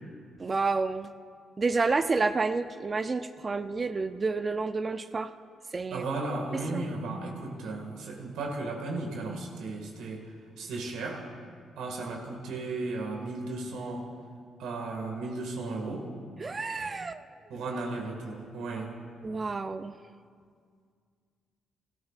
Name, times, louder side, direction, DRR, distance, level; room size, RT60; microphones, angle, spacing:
voice 1, 0.4-1.1 1.6-5.3 5.7-6.0 6.5-6.8 16.4-17.2 19.2-19.9, right 4 dB, 30° right, 11 dB, 0.4 m, -29 dB
voice 2, 5.9-10.2 10.6-11.2 11.8-14.1 14.6-16.1 17.5-19.0, right 3 dB, 85° right, 1 dB, 1.8 m, -35 dB
17.0 x 13.5 x 2.5 m, 2.1 s
cardioid pair, 90°, 0 cm